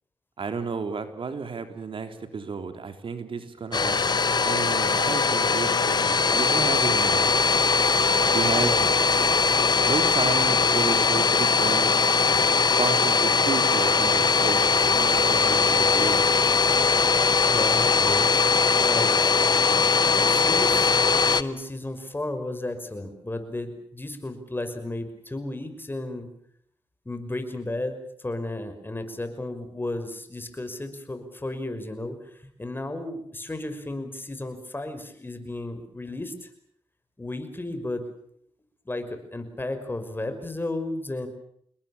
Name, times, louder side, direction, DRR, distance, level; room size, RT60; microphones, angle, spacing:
voice 1, 0.4-4.0 4.4-7.3 8.3-8.9 9.9-12.0 12.8-16.5, right 5 dB, 60° right, 8 dB, 3.6 m, -32 dB
Domestic sounds home sounds, 3.7-21.4, left 4 dB, 45° left, 1.2 m, -21 dB
voice 2, 17.5-18.3 18.8-19.1 19.9-20.9 21.3-26.3 27.1-36.5 37.2-38.1 38.9-41.3, left 2 dB, 20° left, 8 dB, 5.6 m, -33 dB
28.5 x 21.0 x 7.3 m, 0.67 s
cardioid pair, 65°, 10 cm